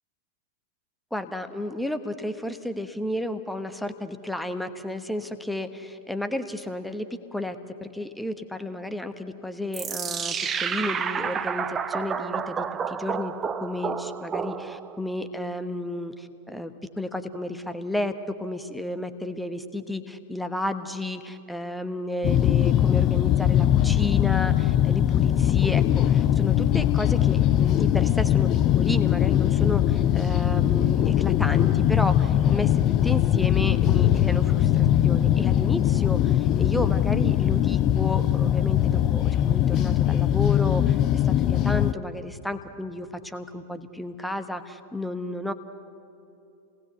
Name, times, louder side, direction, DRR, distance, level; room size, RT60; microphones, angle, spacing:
voice 1, 1.1-7.6 7.9-13.3 13.6-18.1 18.4-28.5 28.8-45.5, left 1 dB, 5° left, 9 dB, 1.1 m, -32 dB
sound 1, 9.7-15.0, right 6 dB, 20° right, 0.8 m, -30 dB
sound 2, 22.2-41.9, left 11 dB, 35° left, 0.5 m, -21 dB
29.0 x 19.0 x 8.0 m, 2.9 s
figure-of-eight pair, 90°, 0 cm